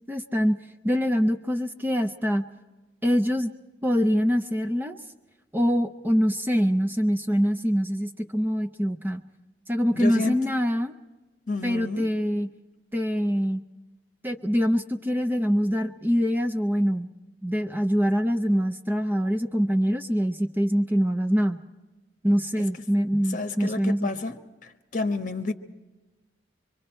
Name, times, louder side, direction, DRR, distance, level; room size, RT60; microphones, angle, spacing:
voice 1, 0.1-0.6 0.8-2.4 3.0-3.5 3.8-5.0 5.5-9.2 9.7-10.9 11.6-12.5 12.9-13.6 14.2-17.1 17.4-21.6 22.2-24.1, equal, 10° right, 0.6 m, -24 dB
voice 2, 9.9-10.4 11.5-12.1 22.6-22.7 23.3-24.4 24.6-25.5, left 3 dB, 45° left, 1.1 m, -30 dB
25.0 x 24.5 x 4.4 m
head